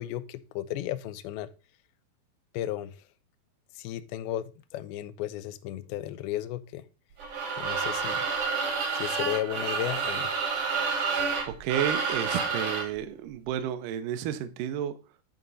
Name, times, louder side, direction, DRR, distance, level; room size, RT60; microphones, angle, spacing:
voice 1, 0.0-1.5 2.5-3.0 3.8-6.8 7.6-8.2 9.0-10.3, left 13 dB, 80° left, 2.3 m, -34 dB
sound 1, 7.2-13.0, right 5 dB, 50° right, 1.7 m, -29 dB
voice 2, 11.4-14.9, right 10 dB, 75° right, 2.0 m, -31 dB
10.5 x 3.8 x 5.5 m
omnidirectional pair, 4.9 m